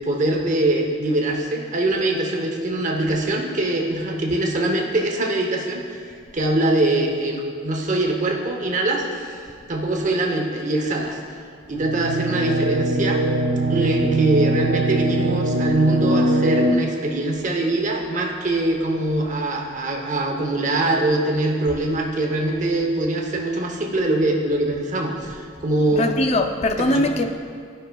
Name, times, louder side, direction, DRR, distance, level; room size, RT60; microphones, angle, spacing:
voice 1, 0.0-6.0 6.3-9.4 9.7-11.2 11.7-13.2 13.7-26.1 26.8-27.1, right 2 dB, 40° right, 0 dB, 0.8 m, -23 dB
sound 1, 11.8-16.7, right 2 dB, 80° right, 0.6 m, -21 dB
voice 2, 25.9-27.4, left 1 dB, 35° left, 6 dB, 0.4 m, -21 dB
13.0 x 5.6 x 2.3 m, 2.2 s
head